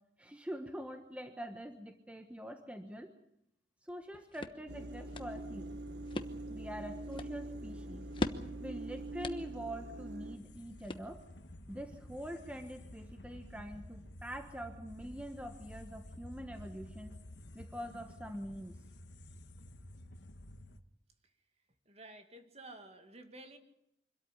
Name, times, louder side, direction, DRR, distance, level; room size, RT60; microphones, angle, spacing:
voice 1, 0.2-3.1 3.8-5.8 6.5-8.1 8.6-11.2 11.7-17.2 17.5-18.8, equal, 10° right, 6 dB, 1.3 m, -45 dB
sound 1, 3.9-11.5, left 1 dB, 30° left, 1.2 m, -44 dB
sound 2, 4.7-10.4, right 2 dB, 70° right, 1.5 m, -44 dB
sound 3, 10.3-20.8, left 1 dB, 75° left, 1.4 m, -52 dB
voice 2, 21.9-23.6, right 2 dB, 35° right, 7 dB, 2.2 m, -52 dB
25.5 x 13.0 x 10.0 m, 0.81 s
head